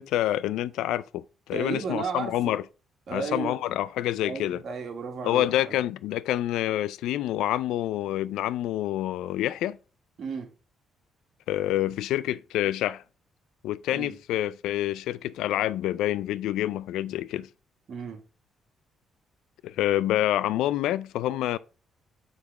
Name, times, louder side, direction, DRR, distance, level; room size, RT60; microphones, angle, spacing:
voice 1, 0.0-2.6 3.1-4.6 5.2-9.8 11.5-13.0 13.6-17.5 19.6-21.6, left 13 dB, 90° left, 0.3 m, -27 dB
voice 2, 1.5-2.6 3.1-3.6 4.2-5.8 10.2-10.5 13.9-14.1 17.9-18.2, right 5 dB, 60° right, 1.8 m, -34 dB
7.0 x 4.1 x 4.6 m
cardioid pair, 90°, 0 cm